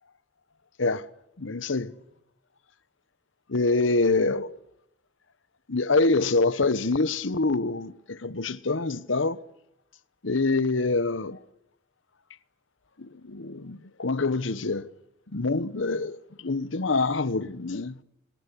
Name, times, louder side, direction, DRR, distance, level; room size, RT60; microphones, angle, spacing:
voice 1, 1.4-2.0 3.5-4.6 5.7-9.4 10.2-11.4 13.0-14.9 15.3-18.0, left 3 dB, 80° left, 1.0 m, -26 dB
26.0 x 19.5 x 10.0 m
head